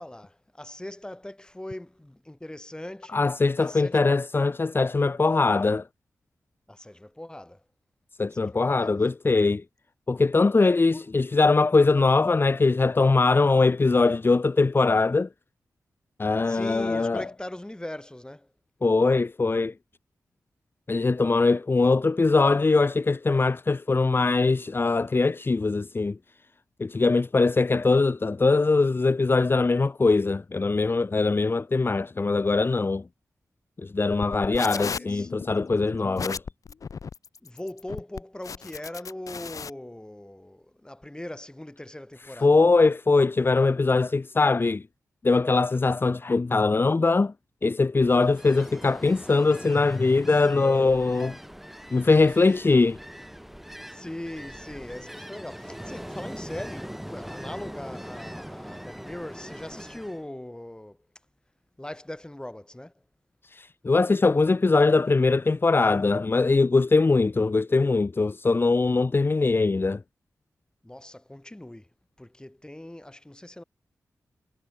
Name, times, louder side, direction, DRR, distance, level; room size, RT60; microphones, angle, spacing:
voice 1, 0.0-3.3 3.6-4.2 6.7-7.6 8.3-8.9 10.9-11.1 16.5-18.5 34.5-35.3 37.4-42.7 53.9-61.0 61.8-62.9 70.8-71.9 72.2-73.6, left 1 dB, 15° left, 4.0 m, -40 dB
voice 2, 3.1-5.9 8.2-9.6 10.1-15.3 16.2-17.3 18.8-19.7 20.9-26.2 26.8-33.0 33.8-36.4 42.4-44.9 45.2-47.3 47.6-51.4 51.9-53.0 63.4-70.0, left 3 dB, 35° left, 0.9 m, -22 dB
sound 1, 34.1-39.7, left 6 dB, 65° left, 1.5 m, -36 dB
Ocean, 48.0-60.2, equal, 5° right, 2.6 m, -42 dB
cardioid pair, 50°, 6 cm